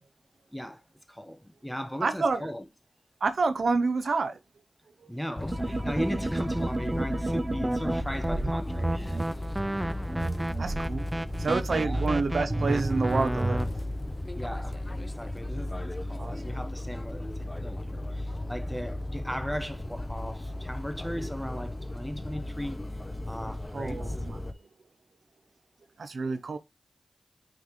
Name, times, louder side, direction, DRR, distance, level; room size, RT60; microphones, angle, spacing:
voice 1, 0.5-0.8 1.1-2.7 5.1-9.2 11.7-12.0 14.3-14.8 15.2-22.8 23.3-24.2, equal, 5° left, 1.0 m, -37 dB
voice 2, 2.0-2.5 3.2-4.4 5.0-5.1 10.0-10.1 10.5-11.1 11.4-13.7 16.2-16.3 23.7-24.4 26.0-26.6, right 4 dB, 80° right, 0.5 m, -28 dB
sound 1, 5.4-24.5, left 1 dB, 30° left, 0.7 m, -36 dB
sound 2, 5.5-9.2 10.1-13.6, right 2 dB, 45° right, 0.8 m, -33 dB
sound 3, 6.0-13.6, right 1 dB, 15° right, 0.4 m, -32 dB
9.0 x 3.6 x 3.1 m
cardioid pair, 40°, 0 cm